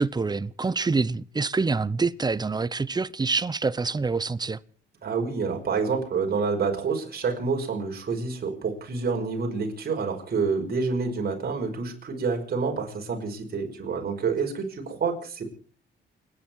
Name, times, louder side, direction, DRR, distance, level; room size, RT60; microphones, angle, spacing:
voice 1, 0.0-4.6, right 4 dB, 20° right, 0.8 m, -26 dB
voice 2, 5.0-15.5, right 5 dB, 50° right, 5.5 m, -28 dB
29.0 x 10.5 x 4.7 m
cardioid pair, 90°, 20 cm